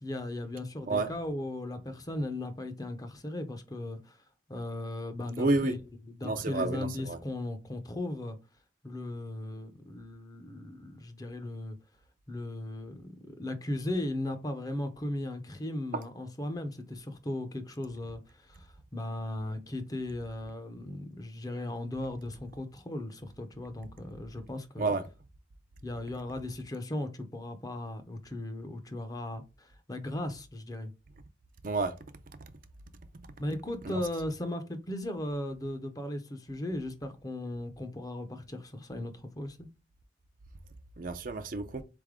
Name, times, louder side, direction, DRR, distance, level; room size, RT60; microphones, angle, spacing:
voice 1, 0.0-4.2 4.5-5.8 6.1-8.4 8.8-11.8 12.3-24.9 25.8-30.9 33.4-39.7, left 1 dB, 20° left, 0.6 m, -37 dB
voice 2, 5.4-5.7 6.2-7.2 24.8-25.1 31.6-31.9 33.8-34.0 41.0-41.8, right 3 dB, 50° right, 0.5 m, -30 dB
4.0 x 3.4 x 3.6 m
head